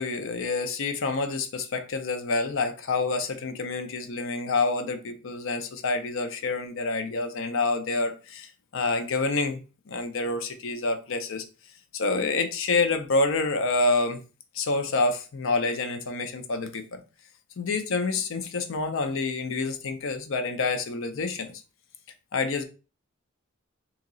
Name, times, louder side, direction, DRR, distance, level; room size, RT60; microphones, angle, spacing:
voice 1, 0.0-9.6 9.9-11.4 11.9-14.2 14.5-17.0 17.6-21.6 22.3-22.6, left 3 dB, 65° left, 0.6 m, -27 dB
2.9 x 2.8 x 3.9 m
head